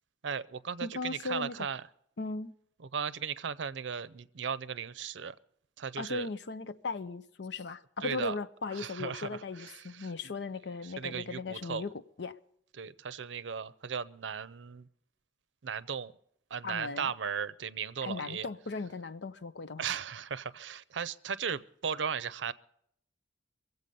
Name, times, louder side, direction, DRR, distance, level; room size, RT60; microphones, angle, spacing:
voice 1, 0.2-1.8 2.9-5.3 5.8-6.3 8.0-8.4 8.7-10.1 10.8-11.8 12.8-14.9 15.6-16.1 16.5-18.5 19.8-22.5, right 6 dB, 85° right, 0.6 m, -36 dB
voice 2, 0.8-1.7 2.2-2.5 6.0-12.4 16.6-17.1 18.0-19.9, left 3 dB, 70° left, 0.6 m, -37 dB
23.5 x 8.0 x 5.3 m
head